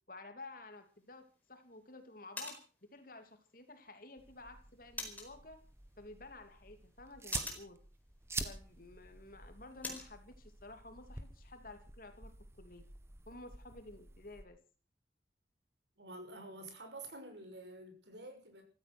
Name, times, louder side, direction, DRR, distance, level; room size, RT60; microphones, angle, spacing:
voice 1, 0.1-2.6 2.9-5.6 6.0-7.8 8.4-12.9 13.3-14.6, left 2 dB, 50° left, 2.9 m, -52 dB
sound 1, 0.7-10.2, left 2 dB, 10° left, 4.6 m, -50 dB
sound 2, 4.2-14.4, right 3 dB, 15° right, 1.7 m, -48 dB
voice 2, 16.0-18.6, right 2 dB, 75° right, 6.1 m, -49 dB
16.0 x 14.5 x 6.2 m
head